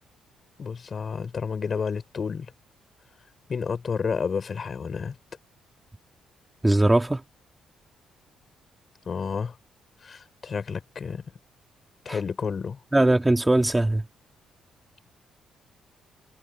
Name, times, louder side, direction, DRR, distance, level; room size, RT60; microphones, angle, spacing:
voice 1, 0.6-2.5 3.5-5.1 9.0-9.6 10.0-11.2 12.0-12.8, left 5 dB, 45° left, 5.0 m, -30 dB
voice 2, 6.6-7.2 12.1-12.2 12.9-14.0, right 2 dB, 10° right, 3.2 m, -20 dB
cardioid pair, 90°, 0 cm